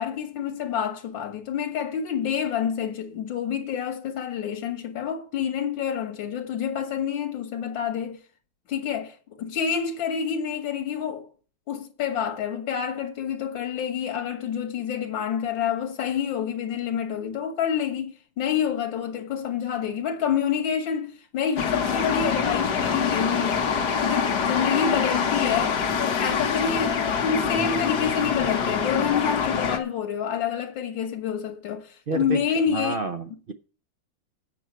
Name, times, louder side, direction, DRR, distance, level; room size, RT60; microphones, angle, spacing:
voice 1, 0.0-8.2 8.7-11.3 11.7-23.7 24.0-33.0, left 8 dB, 90° left, 1.9 m, -28 dB
sound 1, 21.6-29.8, left 6 dB, 60° left, 1.8 m, -25 dB
voice 2, 32.1-32.4 32.7-33.5, right 3 dB, 60° right, 0.5 m, -29 dB
8.6 x 6.0 x 7.7 m
omnidirectional pair, 2.0 m